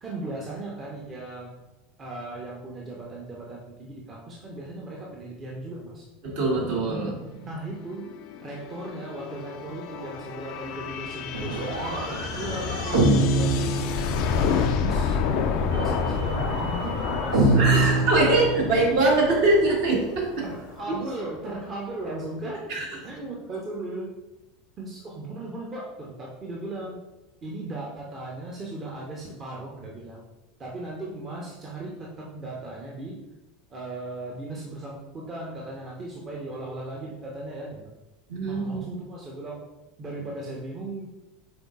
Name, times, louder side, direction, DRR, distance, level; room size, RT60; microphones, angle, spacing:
voice 1, 0.0-1.5 2.0-6.1 7.5-8.1 8.4-13.8 14.4-15.2 15.5-18.2 20.4-22.7 23.0-24.1 24.8-27.0 27.4-30.2 30.6-33.2 33.7-37.9 38.5-39.6 40.0-41.1, right 2 dB, 30° right, -3 dB, 0.8 m, -37 dB
voice 2, 6.2-7.5 17.5-20.4 20.9-21.0 22.7-22.8 38.3-39.0, right 2 dB, 60° right, -4 dB, 1.4 m, -23 dB
sound 1, 7.9-21.4, left 6 dB, 50° left, 0.4 m, -30 dB
sound 2, 11.3-14.6 15.7-19.0, right 2 dB, 75° right, 0.9 m, -25 dB
5.4 x 3.8 x 2.4 m, 1.0 s
figure-of-eight pair, 75°, 0 cm